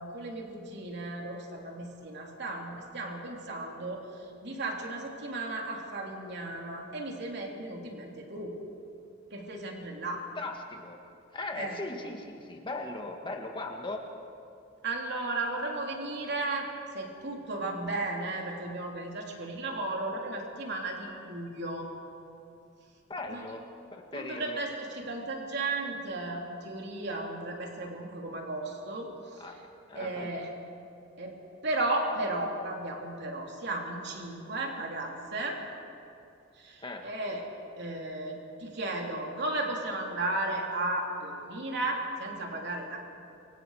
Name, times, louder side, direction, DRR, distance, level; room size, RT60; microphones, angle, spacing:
voice 1, 0.0-8.5 9.3-10.2 11.6-11.8 12.0-12.1 14.8-21.9 23.3-23.5 24.1-29.6 29.9-30.5 31.2-35.6 36.6-37.4 37.8-43.0, right 2 dB, 60° right, 0 dB, 3.3 m, -35 dB
voice 2, 10.0-11.0 11.3-14.0 23.1-23.6 23.9-24.6 29.4-29.6 29.9-30.3 36.8-37.0, left 2 dB, 25° left, 2 dB, 1.8 m, -38 dB
28.5 x 24.0 x 5.0 m, 2.6 s
head